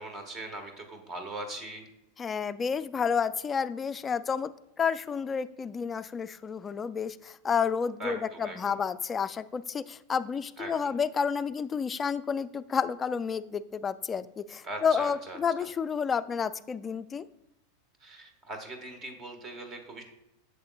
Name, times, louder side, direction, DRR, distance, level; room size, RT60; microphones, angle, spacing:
voice 1, 0.0-1.9 8.0-8.7 10.6-10.9 14.6-15.7 18.0-20.0, right 2 dB, 35° right, 5 dB, 1.5 m, -40 dB
voice 2, 2.2-4.5 4.8-17.3, left 6 dB, 25° left, 14 dB, 0.3 m, -30 dB
8.5 x 6.8 x 2.3 m, 0.86 s
hypercardioid pair, 100°, 0 cm